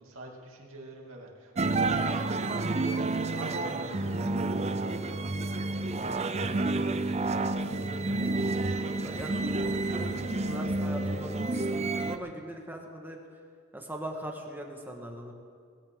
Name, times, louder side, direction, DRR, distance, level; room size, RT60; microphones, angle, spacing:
voice 1, 0.0-3.0 3.3-4.4 12.1-12.4, right 2 dB, 75° right, -1 dB, 2.7 m, -46 dB
sound 1, 1.6-12.2, right 2 dB, 30° right, 0.6 m, -30 dB
sound 2, 2.4-11.6, left 1 dB, 45° left, 2.8 m, -45 dB
voice 2, 5.0-5.5 8.1-9.8 10.2-13.2 13.7-15.3, right 1 dB, 10° right, 2 dB, 1.6 m, -42 dB
20.0 x 15.0 x 3.8 m, 2.1 s
head